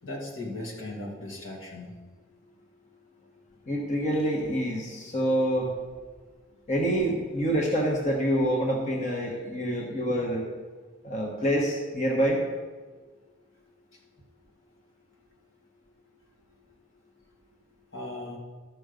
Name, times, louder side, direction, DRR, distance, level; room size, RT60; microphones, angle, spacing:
voice 1, 0.0-2.0 17.9-18.4, left 1 dB, 80° left, -1 dB, 2.2 m, -37 dB
voice 2, 3.7-5.7 6.7-10.4 11.0-12.4, equal, 40° left, -1 dB, 1.3 m, -26 dB
13.0 x 6.2 x 5.2 m, 1.4 s
head